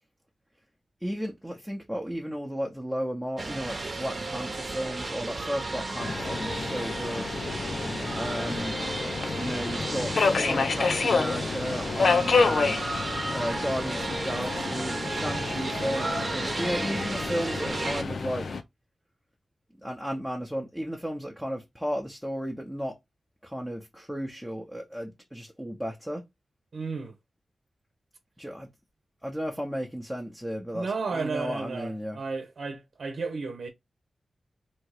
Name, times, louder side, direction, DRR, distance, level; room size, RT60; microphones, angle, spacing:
voice 1, 1.0-7.3 8.1-8.7 9.3-12.8 13.3-18.5 19.8-23.0 23.4-26.3 28.4-28.7 29.2-32.2, equal, 5° right, 0.8 m, -34 dB
sound 1, 3.4-18.0, right 2 dB, 40° right, 0.9 m, -33 dB
Subway metro underground, 6.0-18.6, left 4 dB, 70° left, 0.6 m, -29 dB
voice 2, 26.7-27.1 30.7-33.7, right 4 dB, 70° right, 0.8 m, -33 dB
3.4 x 3.0 x 4.7 m
wide cardioid pair, 145°, 0 cm